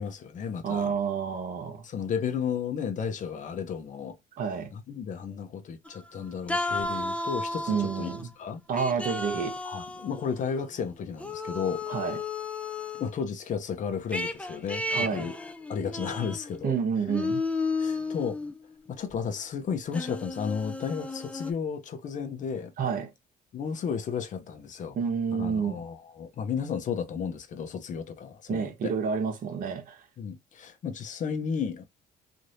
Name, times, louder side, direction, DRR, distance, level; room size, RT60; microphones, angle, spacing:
voice 1, 0.0-1.0 1.8-4.2 4.7-8.1 8.4-8.6 9.6-11.9 13.0-15.3 15.7-16.7 17.8-18.4 18.9-22.7 23.5-25.0 25.4-28.9 30.2-31.8, left 6 dB, 50° left, 0.8 m, -33 dB
voice 2, 0.6-1.8 4.4-4.7 7.7-8.3 8.7-9.6 11.9-12.2 14.9-15.3 16.6-17.4 22.8-23.1 25.0-25.8 28.5-30.0, right 6 dB, 55° right, 1.1 m, -29 dB
sound 1, 5.8-6.2 6.5-8.2 8.8-10.7 11.2-13.1 14.1-16.7 17.1-18.6 19.1-19.2 19.9-21.5, left 3 dB, 5° left, 0.5 m, -33 dB
3.1 x 2.7 x 2.7 m
cardioid pair, 110°, 17 cm